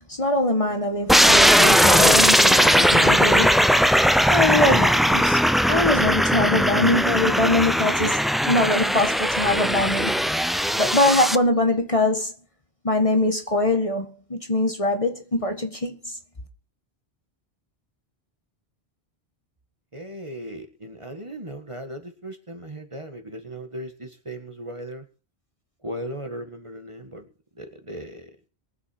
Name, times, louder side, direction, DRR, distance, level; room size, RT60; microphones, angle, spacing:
voice 1, 0.1-3.7 4.3-5.4 5.7-8.2 8.4-10.3 10.8-12.3 12.8-16.2, left 2 dB, 30° left, 1.6 m, -23 dB
sound 1, 1.1-11.4, equal, ahead, 0.3 m, -18 dB
voice 2, 19.9-25.0 25.8-27.3 27.6-28.3, right 1 dB, 30° right, 1.8 m, -37 dB
22.5 x 8.1 x 4.4 m
omnidirectional pair, 1.1 m